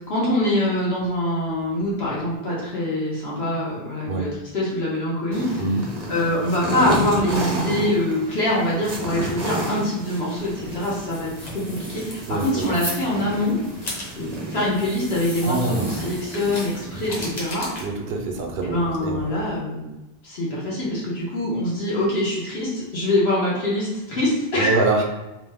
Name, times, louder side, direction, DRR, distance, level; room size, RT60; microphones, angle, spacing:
voice 1, 0.1-5.6 6.1-13.6 14.2-17.7 18.6-19.8 20.2-24.8, left 1 dB, 85° left, -6 dB, 1.2 m, -24 dB
sound 1, 5.3-17.3, right 1 dB, 45° right, 0.6 m, -32 dB
sound 2, 10.4-19.6, left 1 dB, 45° left, 0.9 m, -37 dB
voice 2, 12.3-12.6 15.4-16.0 17.8-19.2 24.5-25.0, right 3 dB, 75° right, 1 dB, 0.8 m, -24 dB
2.9 x 2.1 x 3.3 m, 1.0 s
omnidirectional pair, 1.0 m